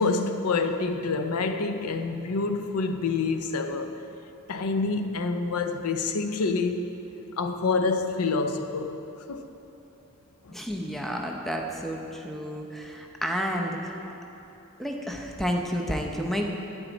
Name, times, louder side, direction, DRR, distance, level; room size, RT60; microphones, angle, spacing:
voice 1, 0.0-4.0 4.5-6.9 7.4-9.0 9.3-9.5 10.4-10.6, left 4 dB, 90° left, 0.5 m, -27 dB
voice 2, 10.5-14.2 14.8-16.5, equal, ahead, 0.6 m, -31 dB
9.4 x 9.3 x 4.0 m
head